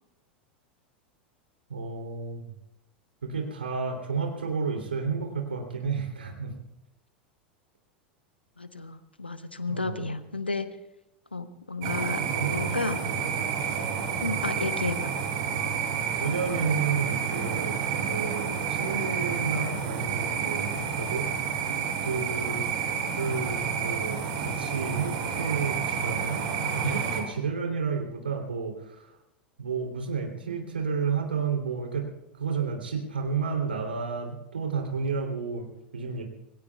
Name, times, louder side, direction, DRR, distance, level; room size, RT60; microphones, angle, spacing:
voice 1, 1.7-2.4 3.2-6.5 9.7-10.1 12.3-13.3 13.7-14.1 16.2-21.3 22.0-22.7 23.2-29.1 29.6-32.1 32.4-36.2, right 5 dB, 75° right, 1 dB, 3.1 m, -31 dB
voice 2, 8.6-10.7 11.3-12.2 12.5-13.0 14.2-15.1, left 3 dB, 85° left, 11 dB, 1.1 m, -32 dB
sound 1, 11.8-27.2, right 6 dB, 50° right, 4.9 m, -30 dB
27.0 x 20.5 x 2.4 m, 0.90 s
figure-of-eight pair, 85°, 6 cm